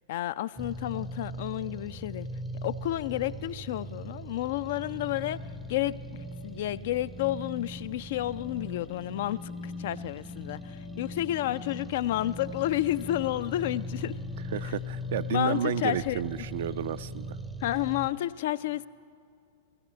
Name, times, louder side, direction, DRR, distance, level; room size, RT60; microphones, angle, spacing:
voice 1, 0.1-2.3 2.6-5.4 5.7-6.0 6.4-14.2 14.6-14.7 15.3-16.2 17.6-18.9, left 14 dB, 55° left, 16 dB, 0.3 m, -31 dB
sound 1, 0.6-18.1, left 1 dB, 5° right, 0.5 m, -39 dB
sound 2, 4.9-15.8, left 2 dB, 80° left, 2.3 m, -55 dB
voice 2, 14.5-17.4, right 10 dB, 60° right, 14 dB, 0.4 m, -31 dB
16.5 x 16.5 x 4.4 m, 2.3 s
figure-of-eight pair, 100°, 0 cm